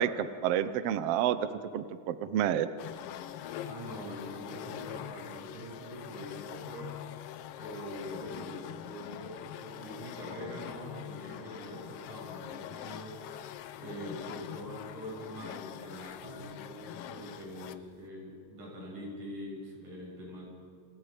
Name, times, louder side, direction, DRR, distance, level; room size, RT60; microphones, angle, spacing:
voice 1, 0.0-1.4 1.7-2.7, right 10 dB, 70° right, 12 dB, 1.6 m, -29 dB
sound 1, 2.8-17.9, left 11 dB, 75° left, 1.4 m, -44 dB
voice 2, 3.7-7.0 7.6-13.2 13.8-20.5, equal, 85° right, -2 dB, 8.3 m, -44 dB
29.0 x 28.0 x 5.1 m, 2.3 s
omnidirectional pair, 3.5 m